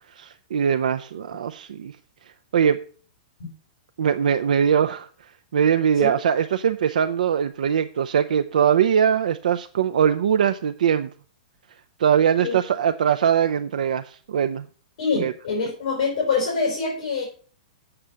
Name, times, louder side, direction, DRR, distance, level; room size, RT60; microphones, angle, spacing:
voice 1, 0.2-1.9 2.5-2.8 4.0-5.1 5.5-11.1 12.0-14.7 15.1-15.3, right 8 dB, 80° right, 0.5 m, -21 dB
voice 2, 15.0-17.2, left 4 dB, 50° left, 4.8 m, -25 dB
7.8 x 7.3 x 6.8 m
hypercardioid pair, 175°, 4 cm